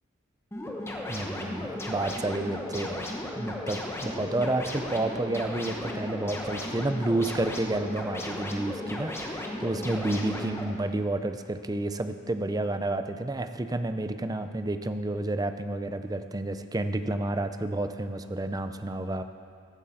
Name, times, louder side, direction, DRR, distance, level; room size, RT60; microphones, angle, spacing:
sound 1, 0.5-10.6, left 1 dB, 15° left, 1.2 m, -35 dB
voice 1, 1.1-3.1 3.3-19.2, right 2 dB, 20° right, 9 dB, 0.5 m, -30 dB
15.0 x 11.0 x 4.3 m, 2.2 s
head